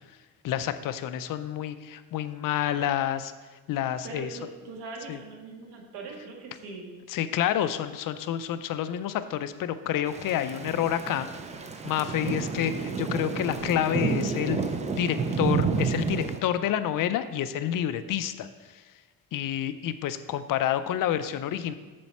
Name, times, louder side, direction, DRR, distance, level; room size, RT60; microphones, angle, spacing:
voice 1, 0.4-3.3 3.7-4.3 5.1-5.2 7.1-11.3 11.8-14.6 15.0-18.5 19.3-21.7, left 11 dB, 55° left, 12 dB, 0.5 m, -28 dB
voice 2, 4.0-6.9, right 3 dB, 75° right, 1 dB, 1.8 m, -41 dB
Thunder / Rain, 10.1-16.4, right 5 dB, 20° right, 0.3 m, -30 dB
7.5 x 7.1 x 4.2 m, 1.4 s
cardioid pair, 160°, 40 cm